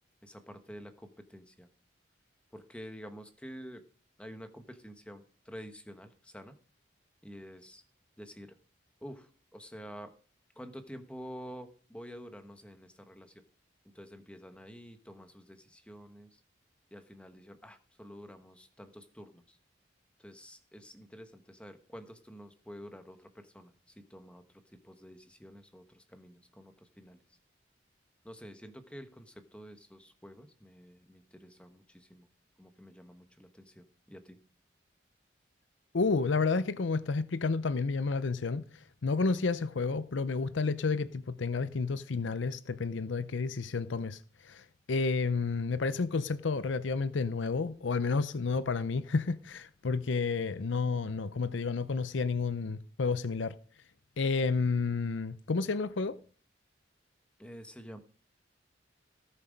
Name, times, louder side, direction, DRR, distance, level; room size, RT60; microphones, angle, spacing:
voice 1, 0.2-1.7 2.5-3.8 4.2-6.5 7.2-7.8 8.2-8.6 9.0-10.1 10.6-13.3 13.9-16.4 16.9-19.6 20.2-27.2 28.2-32.3 32.6-34.4 57.4-58.0, equal, 5° left, 1.2 m, -49 dB
voice 2, 35.9-38.6 39.0-53.6 54.2-56.2, left 4 dB, 75° left, 0.6 m, -31 dB
17.5 x 7.5 x 5.2 m
head